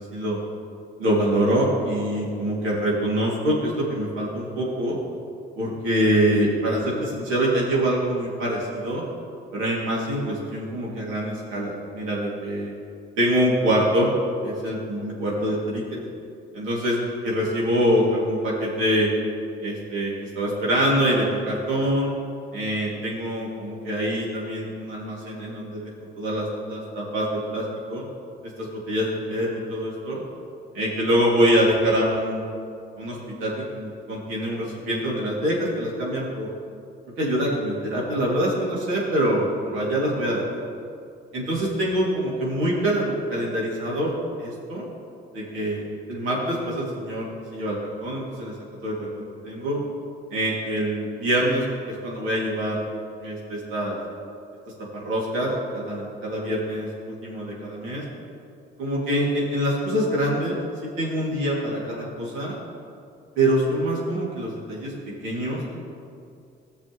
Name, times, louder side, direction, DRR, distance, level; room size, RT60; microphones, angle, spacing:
voice 1, 1.0-4.9 5.6-9.0 9.5-12.7 13.2-14.1 14.4-16.0 16.5-16.9 17.2-19.1 19.6-22.1 22.5-25.9 26.2-27.6 27.9-28.0 28.6-30.2 30.7-32.5 33.0-36.5 37.2-40.4 41.3-44.1 44.4-44.9 45.3-48.5 48.8-49.8 50.3-52.8 53.2-54.0 54.9-58.0 58.8-62.5 63.4-64.9 65.2-65.7, equal, 90° right, -5 dB, 2.6 m, -25 dB
16.0 x 6.8 x 3.2 m, 2.4 s
cardioid pair, 90°, 20 cm